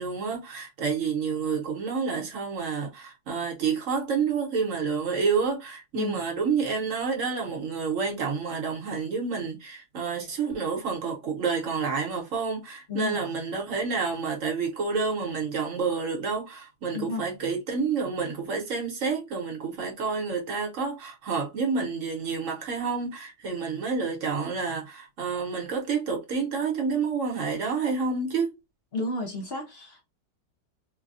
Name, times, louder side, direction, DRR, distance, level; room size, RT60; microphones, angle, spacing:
voice 1, 0.0-28.5, right 5 dB, 60° right, 1.2 m, -29 dB
voice 2, 12.9-13.2 16.9-17.3 28.9-30.0, left 3 dB, 50° left, 0.9 m, -32 dB
3.3 x 2.2 x 2.5 m
omnidirectional pair, 1.6 m